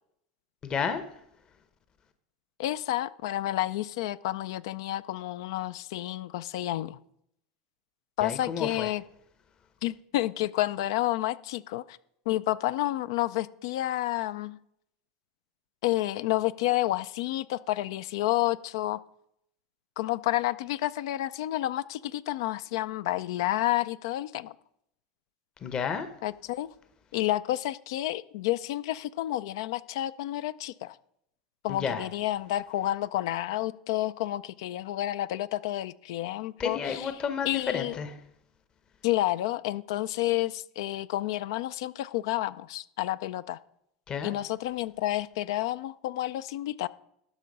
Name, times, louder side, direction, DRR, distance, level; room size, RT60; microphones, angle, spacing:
voice 1, 0.6-1.0 8.2-8.9 25.6-26.1 31.7-32.0 36.6-38.1 44.1-44.3, left 6 dB, 35° left, 9 dB, 0.9 m, -31 dB
voice 2, 2.6-7.0 8.2-9.0 9.8-12.0 12.3-14.6 15.8-19.0 20.0-24.5 26.2-26.7 27.1-31.0 31.6-37.1 37.5-38.0 39.0-43.6 44.2-46.9, left 15 dB, 75° left, 16 dB, 0.4 m, -30 dB
12.0 x 5.9 x 5.3 m, 0.76 s
hypercardioid pair, 95°, 2 cm